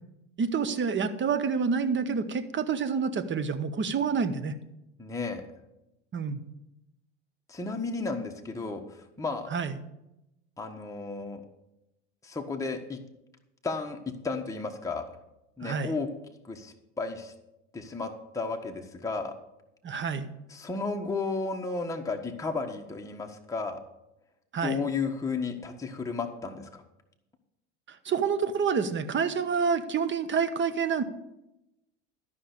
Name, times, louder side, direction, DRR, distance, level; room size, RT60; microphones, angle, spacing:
voice 1, 0.4-4.5 6.1-6.4 9.5-9.7 15.6-15.9 19.8-20.3 24.5-24.8 27.9-31.0, right 6 dB, 30° right, 13 dB, 1.2 m, -28 dB
voice 2, 5.0-5.4 7.5-9.5 10.6-11.4 12.2-13.0 13.6-15.0 15.6-16.1 16.4-17.3 17.7-19.3 20.5-23.8 24.6-26.8, left 4 dB, 10° left, 2 dB, 1.4 m, -33 dB
13.0 x 5.8 x 8.1 m, 0.89 s
hypercardioid pair, 85°, 36 cm